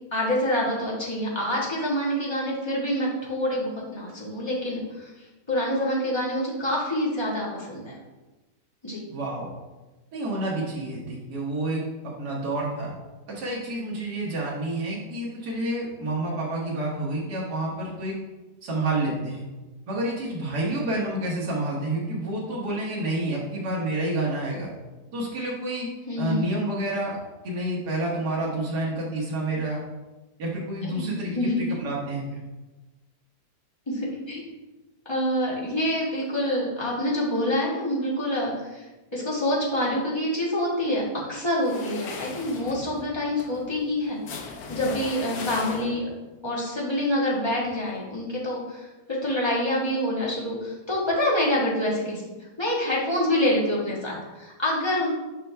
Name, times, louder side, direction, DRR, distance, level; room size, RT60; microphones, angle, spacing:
voice 1, 0.1-5.1 5.5-8.0 8.8-9.0 26.1-26.6 30.8-31.6 33.9-34.5 35.0-38.9 39.1-41.0 41.3-46.1 46.4-52.2 52.6-55.1, left 1 dB, 15° left, -5 dB, 1.6 m, -26 dB
voice 2, 9.1-9.5 10.1-12.9 13.3-18.1 18.6-19.4 19.9-24.7 25.1-25.9 26.2-27.2 27.4-29.8 30.4-32.2, right 1 dB, 85° right, -5 dB, 1.8 m, -29 dB
sound 1, 41.6-46.2, left 4 dB, 90° left, 1.4 m, -38 dB
6.0 x 5.5 x 3.4 m, 1.1 s
omnidirectional pair, 1.7 m